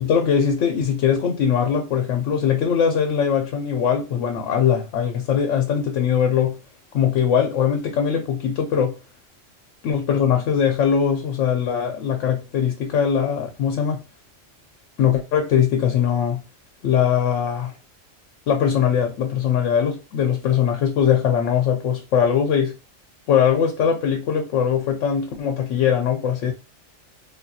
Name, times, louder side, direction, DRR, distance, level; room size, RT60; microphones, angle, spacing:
voice 1, 0.0-6.6 6.9-8.9 9.8-14.0 15.0-16.4 16.8-17.7 18.5-22.7 23.3-26.5, left 8 dB, 75° left, 0.9 m, -21 dB
3.5 x 2.3 x 2.7 m
omnidirectional pair, 1.3 m